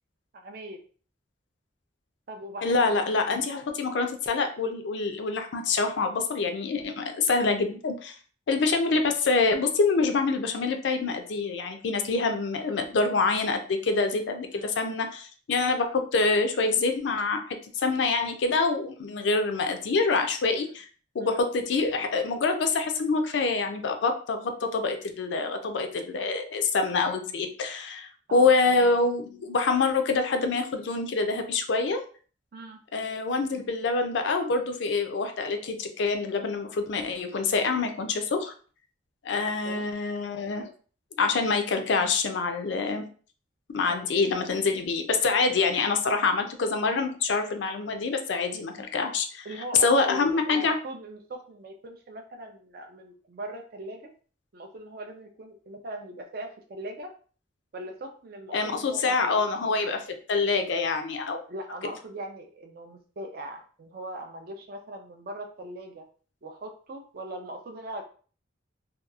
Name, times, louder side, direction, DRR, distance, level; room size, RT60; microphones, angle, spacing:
voice 1, 0.3-0.8 2.3-3.2 9.0-9.1 14.5-14.8 28.3-29.0 32.5-32.8 39.4-39.9 43.8-44.0 48.6-48.8 49.4-54.1 54.5-57.1 57.7-59.4 61.5-66.0 66.4-68.0, right 1 dB, 50° right, 3 dB, 0.4 m, -40 dB
voice 2, 2.6-8.2 8.5-17.4 17.8-20.9 21.1-32.0 32.9-38.5 39.2-40.7 41.2-43.0 43.7-49.5 49.8-50.8 58.5-61.4, left 4 dB, 70° left, 6 dB, 0.4 m, -26 dB
2.8 x 2.3 x 2.3 m, 0.41 s
head